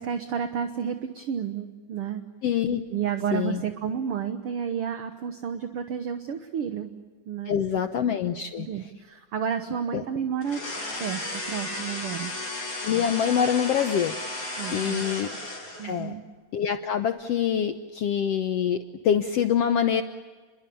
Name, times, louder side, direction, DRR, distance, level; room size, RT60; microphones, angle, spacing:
voice 1, 0.0-2.2 2.9-6.9 7.2-8.2 8.6-12.3 14.6-15.0 15.8-16.2, right 8 dB, 55° right, 7 dB, 1.8 m, -31 dB
voice 2, 2.4-2.8 3.3-3.6 7.5-8.7 9.9-10.0 12.8-14.1 14.7-15.3 15.8-16.1 16.5-20.0, left 8 dB, 65° left, 7 dB, 1.7 m, -25 dB
sound 1, 10.4-16.0, left 2 dB, 35° left, 5.5 m, -34 dB
30.0 x 22.5 x 7.0 m, 1.4 s
omnidirectional pair, 3.6 m